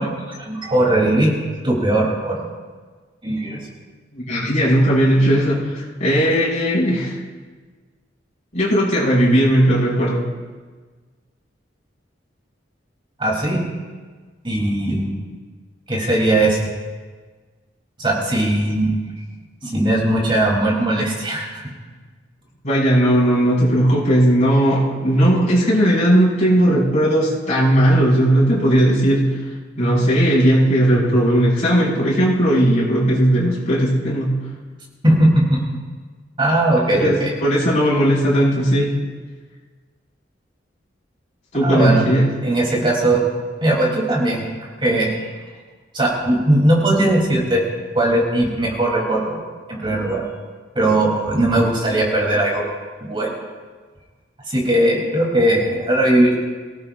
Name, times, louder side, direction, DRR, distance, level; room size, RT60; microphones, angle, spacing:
voice 1, 0.0-1.3 1.6-2.5 3.2-3.7 13.2-13.6 14.4-15.1 15.9-16.7 18.0-18.9 19.6-21.6 35.0-35.6 36.4-37.3 41.6-42.0 42.4-43.2 43.6-44.4 44.8-45.3 45.9-47.6 47.9-49.4 49.7-50.2 50.7-52.6 53.0-53.3 54.5-56.3, right 1 dB, 30° right, -2 dB, 3.5 m, -18 dB
voice 2, 4.1-7.2 8.5-10.3 22.6-34.5 37.0-39.0 41.5-42.3, equal, 45° left, -7 dB, 5.8 m, -17 dB
24.0 x 17.5 x 2.6 m, 1.4 s
head